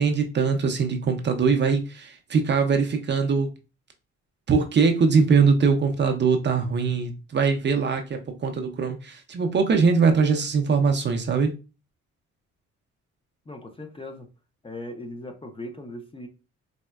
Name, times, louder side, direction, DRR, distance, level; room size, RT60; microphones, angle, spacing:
voice 1, 0.0-3.5 4.5-11.5, right 5 dB, 35° right, 0.5 m, -22 dB
voice 2, 13.5-14.3 14.6-16.3, left 1 dB, 20° left, 0.6 m, -38 dB
4.1 x 2.1 x 2.3 m
cardioid pair, 90°, 30 cm